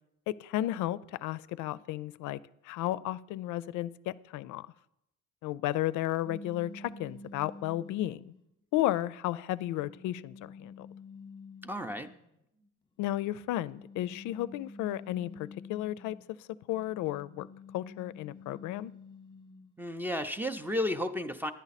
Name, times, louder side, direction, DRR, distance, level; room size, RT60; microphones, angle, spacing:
voice 1, 0.3-2.4 2.6-4.7 5.4-8.3 8.7-10.9 13.0-16.2 16.7-17.5 17.7-18.9, left 14 dB, 85° left, 17 dB, 0.4 m, -33 dB
sound 1, 6.2-8.4 9.1-12.2 13.3-16.3 16.7-19.7, left 3 dB, 15° left, 0.9 m, -49 dB
voice 2, 11.6-12.1 19.8-21.5, left 1 dB, 5° right, 11 dB, 0.4 m, -33 dB
10.5 x 10.5 x 4.1 m, 0.83 s
cardioid pair, 135°, 29 cm